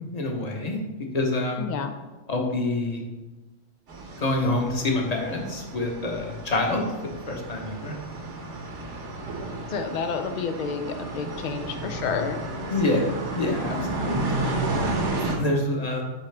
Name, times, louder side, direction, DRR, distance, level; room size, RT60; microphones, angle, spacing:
voice 1, 0.1-0.8 1.1-1.6 2.3-3.0 4.2-6.8 7.3-8.0 12.7-16.0, left 2 dB, 35° left, 1 dB, 0.9 m, -27 dB
voice 2, 1.6-1.9 9.7-12.4, left 6 dB, 90° left, 6 dB, 0.4 m, -30 dB
sound 1, 3.9-15.4, right 2 dB, 65° right, 1.2 m, -32 dB
10.5 x 3.6 x 3.3 m, 1.1 s
omnidirectional pair, 1.4 m